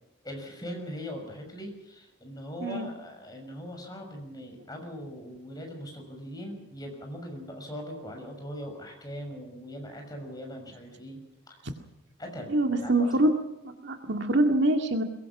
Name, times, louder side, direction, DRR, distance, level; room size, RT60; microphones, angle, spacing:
voice 1, 0.2-11.2 12.2-12.5 12.8-13.1, equal, 20° left, 2 dB, 6.3 m, -40 dB
voice 2, 2.6-2.9 12.5-13.3 13.8-15.0, right 1 dB, 55° right, 5 dB, 2.1 m, -24 dB
22.5 x 22.0 x 6.2 m, 0.90 s
head